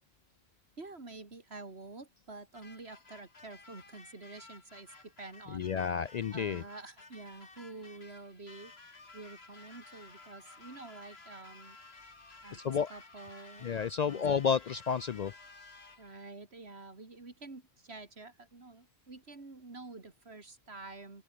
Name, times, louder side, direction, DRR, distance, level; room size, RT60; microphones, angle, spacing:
voice 1, 0.8-5.7 6.3-11.8 12.4-13.7 14.0-14.2 16.0-21.2, right 3 dB, 80° right, 3.3 m, -48 dB
sound 1, 2.5-16.2, left 3 dB, 75° left, 2.8 m, -55 dB
voice 2, 5.5-6.6 12.5-12.9 13.6-15.3, left 7 dB, 55° left, 0.5 m, -31 dB
open air
omnidirectional pair, 1.1 m